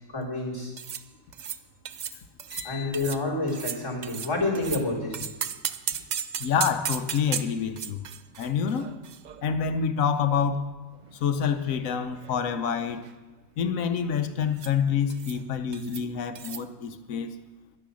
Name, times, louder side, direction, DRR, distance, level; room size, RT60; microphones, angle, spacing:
voice 1, 0.1-0.7 2.6-5.3, left 2 dB, 20° left, -5 dB, 3.3 m, -29 dB
sound 1, 0.8-1.0 1.3-1.6 1.9-2.1 2.4-2.7 2.9-3.2 3.5-4.8 5.1-9.8 10.1-10.2 10.9-11.8 12.1-12.4 12.7-13.1 14.6-14.8 15.1-15.4 15.7-16.0 16.4-16.6, right 8 dB, 90° right, 0.4 m, -35 dB
voice 2, 2.5-2.9 6.4-8.0 8.4-8.9 9.4-10.7 11.1-13.0 13.6-17.4, left 7 dB, 80° left, 9 dB, 1.2 m, -27 dB
11.0 x 10.5 x 6.2 m, 1.1 s
omnidirectional pair, 1.4 m